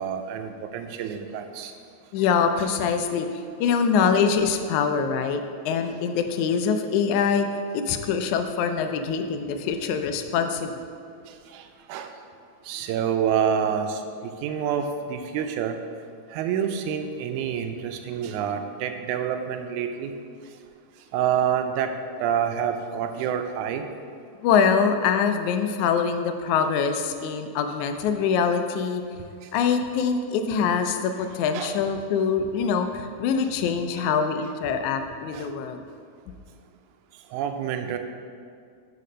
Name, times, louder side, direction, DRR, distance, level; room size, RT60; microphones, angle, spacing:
voice 1, 0.0-1.7 11.5-11.6 11.9-12.1 12.7-15.8 16.3-20.1 21.1-21.9 22.2-23.8 31.5-31.7 35.3-35.5 37.3-38.0, right 8 dB, 85° right, 6 dB, 2.0 m, -27 dB
voice 2, 2.1-10.7 24.4-29.0 29.5-35.8, left 6 dB, 85° left, 7 dB, 1.9 m, -24 dB
6.6 x 5.1 x 5.3 m, 2.2 s
omnidirectional pair, 3.4 m